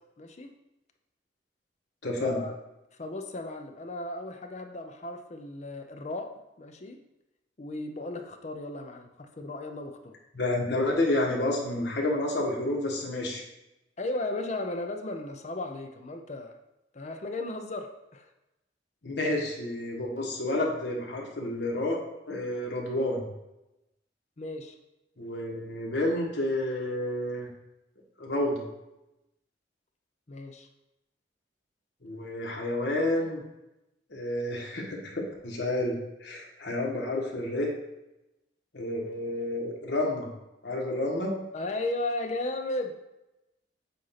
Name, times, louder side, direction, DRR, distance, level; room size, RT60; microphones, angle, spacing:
voice 1, 0.2-0.5 2.2-2.6 3.0-6.3 6.6-7.0 7.6-10.2 14.0-16.5 16.9-18.3 24.4-24.8 30.3-30.7 41.5-43.0, left 2 dB, 40° left, 5 dB, 0.6 m, -35 dB
voice 2, 2.0-2.4 10.3-13.4 19.0-22.0 22.3-23.3 25.2-27.5 28.2-28.7 32.0-33.4 34.1-37.7 38.7-40.3 40.6-41.3, left 1 dB, 70° left, -1 dB, 1.4 m, -30 dB
7.7 x 2.6 x 5.7 m, 0.93 s
head